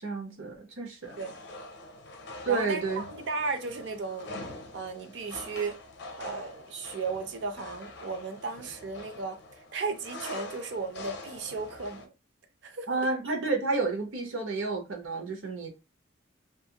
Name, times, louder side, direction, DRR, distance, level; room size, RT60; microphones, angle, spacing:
voice 1, 0.0-1.2 2.4-3.0 12.9-15.7, right 3 dB, 80° right, 0.8 m, -30 dB
sound 1, 1.0-12.1, left 2 dB, 55° left, 0.5 m, -44 dB
voice 2, 2.5-4.3 4.7-5.8 6.2-9.4 9.7-12.1 12.6-12.9, right 4 dB, 60° right, 0.5 m, -35 dB
2.5 x 2.4 x 2.8 m
head